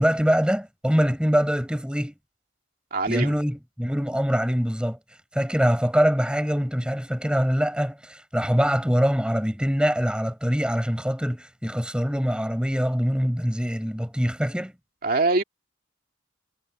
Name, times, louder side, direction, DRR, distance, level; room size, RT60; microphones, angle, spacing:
voice 1, 0.0-2.1 3.1-5.0 5.3-14.7, equal, 5° right, 4.8 m, -24 dB
voice 2, 2.9-3.3 15.0-15.4, right 3 dB, 45° right, 2.3 m, -23 dB
head